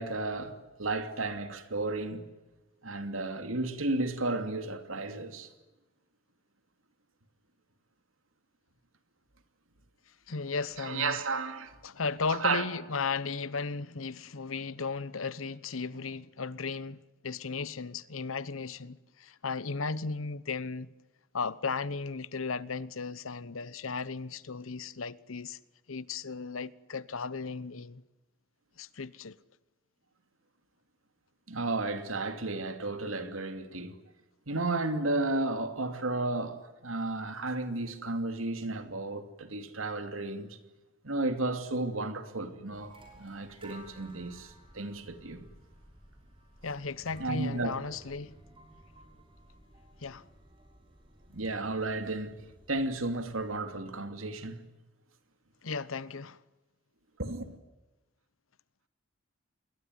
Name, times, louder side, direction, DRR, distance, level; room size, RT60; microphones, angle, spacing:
voice 1, 0.0-2.2 2.8-5.5 10.8-11.7 12.3-12.6 31.5-33.9 34.5-40.6 41.0-45.4 47.2-47.7 51.3-52.3 52.7-54.6 57.2-57.5, right 2 dB, 90° right, 2.7 m, -33 dB
voice 2, 10.3-11.2 11.8-20.9 21.3-25.6 25.9-28.0 28.8-29.4 46.6-48.3 50.0-50.3 55.6-56.4, left 4 dB, 90° left, 1.0 m, -35 dB
sound 1, 42.7-53.6, right 1 dB, 25° right, 5.8 m, -56 dB
27.5 x 21.5 x 9.4 m
head